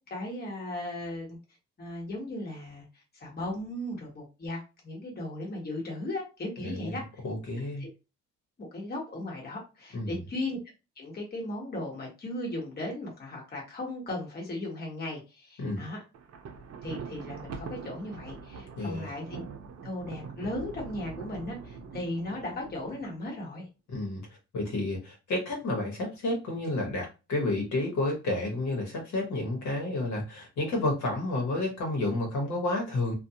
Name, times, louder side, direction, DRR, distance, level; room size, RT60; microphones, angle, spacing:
voice 1, 0.1-1.4 1.8-7.0 7.8-7.9 8.6-10.6 11.0-16.0 16.8-19.4 19.8-23.7, left 1 dB, 30° left, -2 dB, 1.3 m, -36 dB
voice 2, 6.6-7.0 7.2-7.8 9.9-10.2 15.6-15.8 18.8-19.1 23.9-24.2 24.5-33.1, left 2 dB, 70° left, 0 dB, 1.3 m, -30 dB
Thunder, 16.1-23.4, right 5 dB, 55° right, 0.6 m, -43 dB
2.5 x 2.4 x 2.8 m, 0.29 s
cardioid pair, 90°, 30 cm